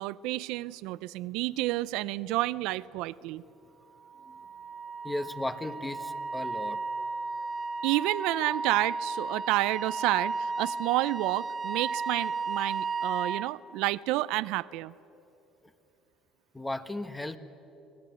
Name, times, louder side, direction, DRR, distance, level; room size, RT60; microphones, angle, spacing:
voice 1, 0.0-3.4 7.8-14.9, right 18 dB, 75° right, 17 dB, 0.5 m, -30 dB
Wind instrument woodwind instrument, 4.0-13.5, right 4 dB, 40° right, 1.1 m, -34 dB
voice 2, 5.0-6.8 16.5-17.4, left 1 dB, 15° left, 10 dB, 1.5 m, -35 dB
25.5 x 17.5 x 9.4 m, 3.0 s
supercardioid pair, 80°, 0 cm